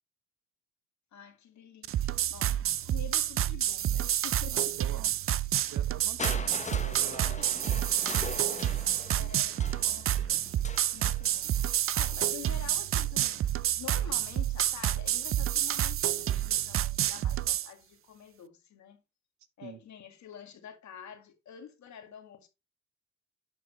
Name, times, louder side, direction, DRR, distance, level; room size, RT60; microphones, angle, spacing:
voice 1, 1.1-4.7 9.1-10.5 10.9-13.5 13.8-19.0 19.6-22.5, left 9 dB, 70° left, 2.1 m, -48 dB
sound 1, 1.8-17.7, right 11 dB, 45° right, 0.5 m, -29 dB
voice 2, 4.5-7.9 19.6-19.8, right 8 dB, 65° right, 1.2 m, -47 dB
Crushing, 6.2-12.1 13.1-13.2, left 4 dB, 25° left, 1.1 m, -41 dB
11.5 x 4.8 x 3.1 m
cardioid pair, 90°, 30 cm